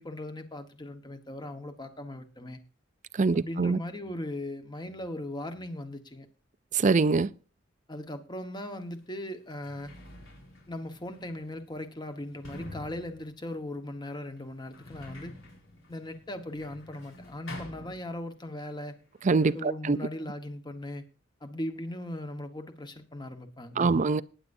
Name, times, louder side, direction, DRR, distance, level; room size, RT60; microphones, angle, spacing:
voice 1, 0.0-2.6 3.3-6.3 7.9-9.9 10.7-15.3 15.9-18.9 19.5-21.0 21.4-23.9, left 1 dB, 20° left, 1.3 m, -38 dB
voice 2, 3.2-3.8 6.7-7.3 19.2-20.0 23.8-24.2, right 4 dB, 40° right, 0.5 m, -24 dB
Sliding door, 8.7-8.8 9.4-18.6 18.8-19.7, left 1 dB, 80° left, 4.1 m, -48 dB
19.0 x 9.8 x 2.7 m
head